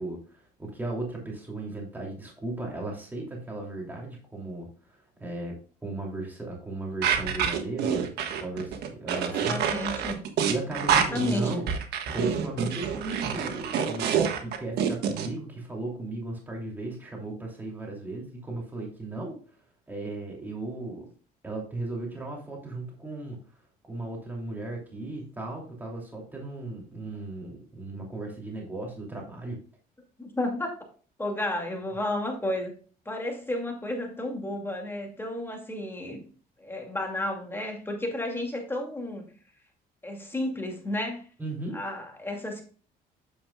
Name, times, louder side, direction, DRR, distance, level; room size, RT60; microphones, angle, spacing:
voice 1, 0.0-4.7 5.2-5.6 5.8-8.1 8.4-9.6 10.5-11.7 12.1-19.4 19.9-21.1 21.4-23.5 23.9-29.6 41.4-41.8, right 2 dB, 10° right, -1 dB, 2.8 m, -36 dB
sound 1, 7.0-15.3, right 7 dB, 75° right, 1.4 m, -27 dB
voice 2, 9.1-10.2 10.7-11.6 30.2-30.7 31.2-32.8 33.1-36.2 36.6-39.3 40.0-41.2 41.7-42.6, left 1 dB, 15° left, 2 dB, 2.3 m, -32 dB
9.2 x 7.1 x 2.3 m, 0.40 s
cardioid pair, 110°, 17 cm